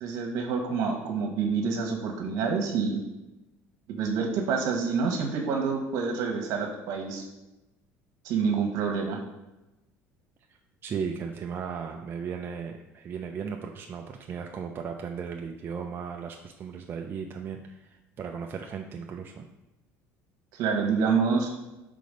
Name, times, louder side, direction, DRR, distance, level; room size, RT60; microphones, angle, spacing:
voice 1, 0.0-3.0 3.9-7.3 8.2-9.2 20.5-21.5, right 5 dB, 70° right, 3 dB, 1.2 m, -27 dB
voice 2, 10.8-19.4, right 6 dB, 35° right, 3 dB, 0.4 m, -36 dB
5.0 x 3.9 x 5.1 m, 0.98 s
cardioid pair, 125°, 6 cm